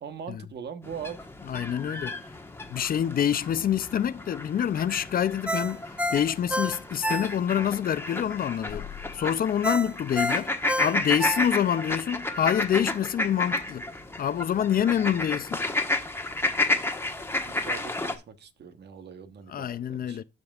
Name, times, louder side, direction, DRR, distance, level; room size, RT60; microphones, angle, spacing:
voice 1, 0.0-1.3 17.4-20.2, right 7 dB, 60° right, 1.1 m, -41 dB
sound 1, 0.8-18.2, left 2 dB, 10° left, 1.3 m, -32 dB
voice 2, 1.4-2.3 2.7-13.9 14.2-15.6 19.5-20.2, left 9 dB, 45° left, 0.5 m, -27 dB
Ringtone, 5.5-7.7 8.1-8.2 9.6-11.9 12.3-12.4, equal, 5° right, 0.7 m, -29 dB
12.5 x 5.3 x 2.4 m
cardioid pair, 90°, 20 cm